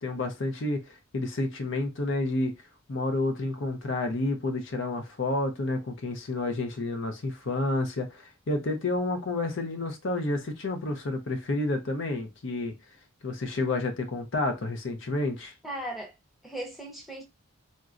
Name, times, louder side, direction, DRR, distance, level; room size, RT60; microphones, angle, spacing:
voice 1, 0.0-2.5 2.9-12.8 13.2-15.5, left 2 dB, 60° left, 0.6 m, -30 dB
voice 2, 15.6-16.1 16.4-17.2, right 1 dB, ahead, 0.6 m, -37 dB
3.8 x 2.2 x 2.4 m
head